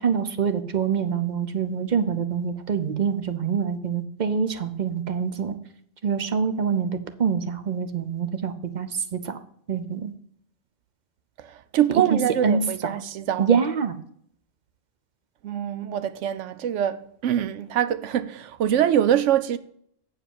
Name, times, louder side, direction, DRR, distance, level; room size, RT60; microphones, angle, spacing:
voice 1, 0.0-5.6 6.0-9.4 9.7-10.1 11.9-12.9 13.4-14.0, right 6 dB, 45° right, 0.7 m, -25 dB
voice 2, 11.4-13.5 15.4-19.6, right 10 dB, 75° right, 0.9 m, -24 dB
8.1 x 4.8 x 7.4 m
omnidirectional pair, 1.3 m